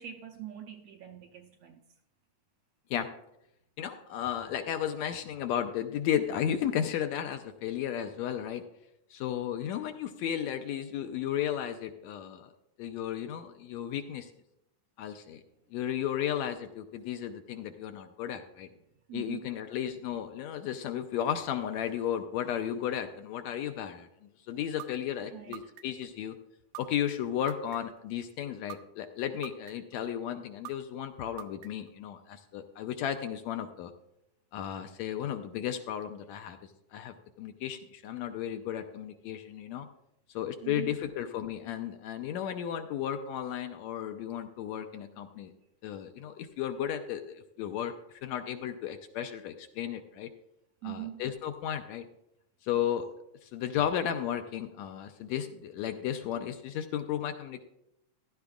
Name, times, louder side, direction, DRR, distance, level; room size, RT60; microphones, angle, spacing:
voice 1, 0.0-1.8 19.1-19.5 25.2-25.7 40.6-41.0 50.8-51.2 52.7-52.8, right 11 dB, 75° right, 4 dB, 1.6 m, -42 dB
voice 2, 3.8-8.6 9.1-12.5 12.8-14.3 15.0-15.4 15.7-18.7 19.1-24.1 24.5-26.4 26.8-33.9 34.5-39.9 40.3-45.5 45.8-50.3 50.8-52.1 52.6-53.1 53.4-57.6, left 10 dB, 80° left, 7 dB, 1.8 m, -34 dB
sound 1, 24.8-24.9 25.5-26.0 26.7-26.8 27.5-28.0 28.7-28.8 29.4-29.9 30.6-30.7 31.4-31.9, right 17 dB, 90° right, 2.1 m, -42 dB
15.5 x 11.5 x 2.4 m, 0.81 s
omnidirectional pair, 3.4 m